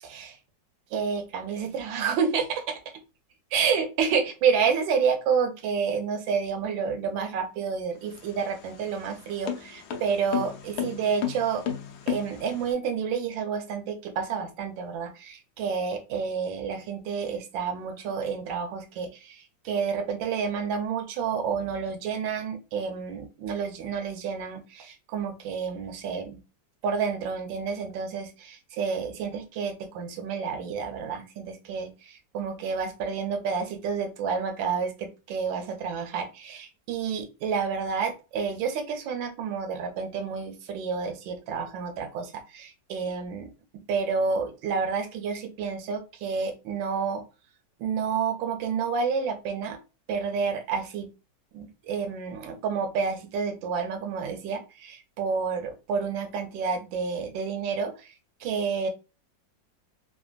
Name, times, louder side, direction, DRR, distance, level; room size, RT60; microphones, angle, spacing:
voice 1, 0.0-0.4 0.9-2.8 3.5-11.6 12.1-26.4 26.8-43.5 43.9-47.2 47.8-49.8 50.1-51.1 51.5-58.1 58.4-58.9, right 6 dB, 90° right, 6 dB, 1.4 m, -29 dB
sound 1, 8.0-12.7, left 9 dB, 70° left, 0.9 m, -34 dB
3.4 x 2.2 x 2.3 m, 0.30 s
omnidirectional pair, 2.0 m